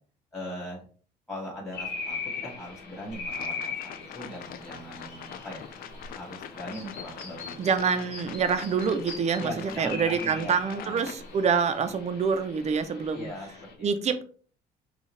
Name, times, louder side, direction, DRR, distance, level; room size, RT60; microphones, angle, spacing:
voice 1, 0.3-0.8 1.3-5.7 6.2-7.5 9.4-11.1 13.1-13.9, equal, 15° left, -5 dB, 1.9 m, -40 dB
sound 1, 1.7-13.7, left 4 dB, 75° left, 1.1 m, -41 dB
sound 2, 3.3-11.2, left 10 dB, 60° left, 0.4 m, -44 dB
Chirp tweet, 4.0-12.0, left 3 dB, 45° left, 1.7 m, -48 dB
voice 2, 7.6-13.3 13.8-14.3, right 6 dB, 40° right, 9 dB, 0.6 m, -26 dB
5.5 x 2.4 x 3.2 m, 0.42 s
cardioid pair, 110°, 17 cm